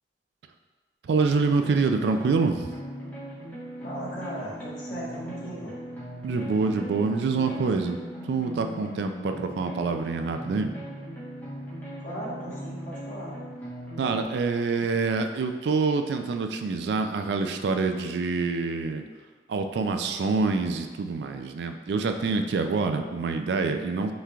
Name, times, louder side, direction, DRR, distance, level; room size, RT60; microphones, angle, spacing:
voice 1, 1.0-2.7 6.2-8.0 8.3-10.7 14.0-19.0 19.5-24.1, right 4 dB, 75° right, 7 dB, 0.3 m, -26 dB
sound 1, 1.6-14.2, equal, 10° left, 1.1 m, -39 dB
voice 2, 3.8-5.7 12.0-13.4, equal, 50° left, -7 dB, 1.3 m, -37 dB
5.6 x 3.2 x 2.4 m, 1.4 s
head